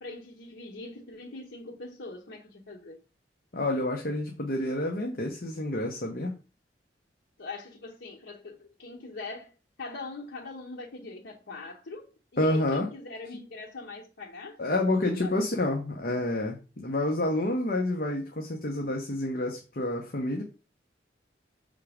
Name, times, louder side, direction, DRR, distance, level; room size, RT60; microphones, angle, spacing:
voice 1, 0.0-3.0 7.4-9.5 9.8-14.6 15.2-15.3, left 3 dB, 85° left, 0.9 m, -42 dB
voice 2, 3.5-6.3 12.4-12.9 14.6-20.4, left 1 dB, 55° left, 1.0 m, -28 dB
5.9 x 3.7 x 5.0 m
head